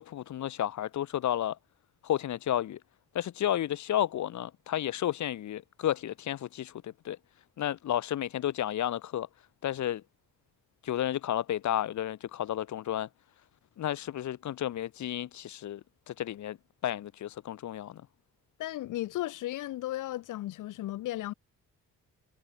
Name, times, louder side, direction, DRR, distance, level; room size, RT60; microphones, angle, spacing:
voice 1, 0.0-1.6 2.0-2.8 3.1-7.2 7.6-9.3 9.6-10.0 10.8-13.1 13.8-15.8 16.1-16.6 16.8-18.0, left 11 dB, 70° left, 2.5 m, -32 dB
voice 2, 18.6-21.3, left 15 dB, 85° left, 6.4 m, -35 dB
cardioid pair, 90°, 30 cm